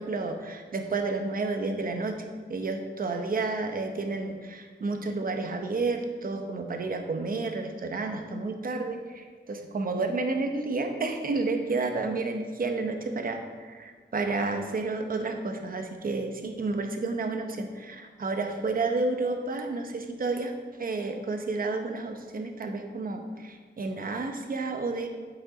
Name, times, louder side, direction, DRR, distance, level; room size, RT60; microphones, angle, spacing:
voice 1, 0.0-2.2 2.5-20.5 20.8-25.1, right 3 dB, 50° right, 5 dB, 0.9 m, -31 dB
9.0 x 7.2 x 3.9 m, 1.5 s
wide cardioid pair, 150°, 19 cm